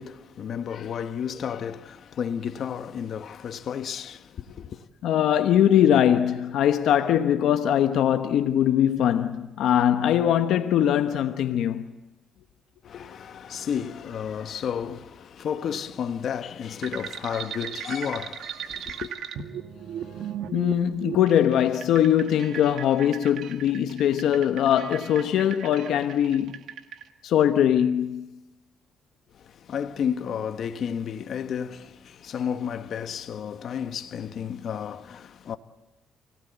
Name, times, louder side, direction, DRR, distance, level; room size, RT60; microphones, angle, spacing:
voice 1, 0.0-4.9 12.8-19.1 29.3-35.6, left 8 dB, 65° left, 1.3 m, -32 dB
voice 2, 5.0-11.9 20.5-26.6 27.2-28.3, left 10 dB, 80° left, 1.0 m, -21 dB
sound 1, 16.8-27.0, right 8 dB, 75° right, 1.9 m, -37 dB
29.0 x 18.0 x 8.2 m
cardioid pair, 90°, 0 cm